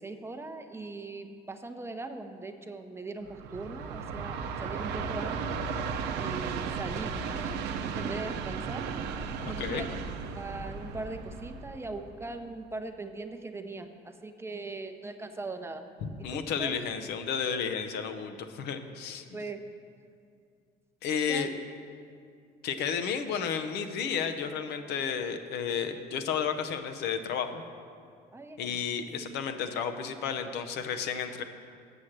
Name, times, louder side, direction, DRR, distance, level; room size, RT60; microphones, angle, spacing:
voice 1, 0.0-5.6 6.2-7.6 8.0-8.8 9.5-9.9 10.3-15.8 16.3-16.7 19.3-19.6 21.3-21.5 28.3-28.8, right 3 dB, 15° right, 6 dB, 0.6 m, -40 dB
Train, 3.3-12.5, right 5 dB, 85° right, 0.6 m, -35 dB
voice 2, 9.4-9.9 16.0-19.2 21.0-21.5 22.6-27.6 28.6-31.4, left 7 dB, 80° left, 8 dB, 0.7 m, -32 dB
8.1 x 6.4 x 7.3 m, 2.3 s
cardioid pair, 110°, 17 cm